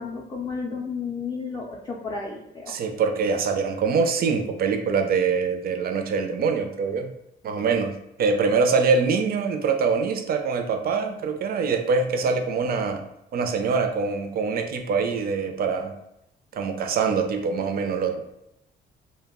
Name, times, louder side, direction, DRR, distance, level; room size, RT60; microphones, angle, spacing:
voice 1, 0.0-2.7, left 4 dB, 20° left, -3 dB, 0.4 m, -32 dB
voice 2, 2.7-7.1 7.4-7.9 8.2-13.0 13.3-15.9 16.5-18.2, right 5 dB, 50° right, 5 dB, 0.4 m, -24 dB
2.2 x 2.0 x 3.5 m, 0.82 s
cardioid pair, 90°, 20 cm